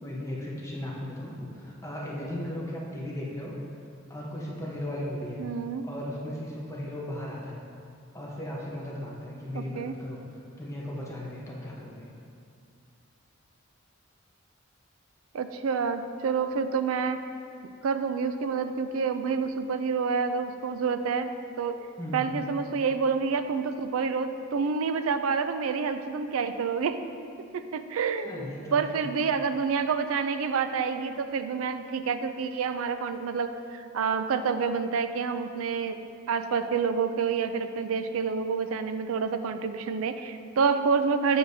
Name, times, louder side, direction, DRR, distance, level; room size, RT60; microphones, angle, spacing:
voice 1, 0.0-3.6 4.1-5.4 5.8-7.6 8.1-10.2 10.6-12.1 22.0-22.4 28.2-29.0, left 1 dB, 15° left, -5 dB, 0.9 m, -36 dB
voice 2, 5.4-5.8 9.5-9.9 15.3-17.2 17.8-21.3 21.6-21.8 22.1-27.0 27.5-41.4, right 5 dB, 90° right, 9 dB, 0.4 m, -28 dB
8.0 x 6.9 x 2.7 m, 2.4 s
head